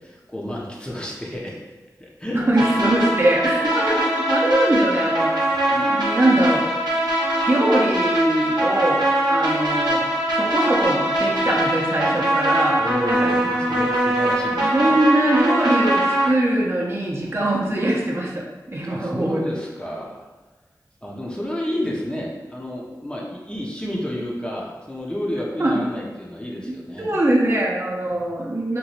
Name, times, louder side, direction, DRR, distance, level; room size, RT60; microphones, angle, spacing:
voice 1, 0.0-2.4 5.5-5.6 12.7-14.9 18.8-20.2 21.0-27.2, left 1 dB, 15° left, -3 dB, 0.6 m, -31 dB
voice 2, 2.3-5.3 5.7-6.7 7.5-10.1 10.3-12.8 13.1-13.8 14.6-19.4 25.6-25.9 26.7-28.8, right 1 dB, 35° right, -4 dB, 0.6 m, -22 dB
sound 1, 2.6-16.3, right 1 dB, 80° right, 0.7 m, -22 dB
2.9 x 2.6 x 2.8 m, 1.2 s
wide cardioid pair, 60°, 7 cm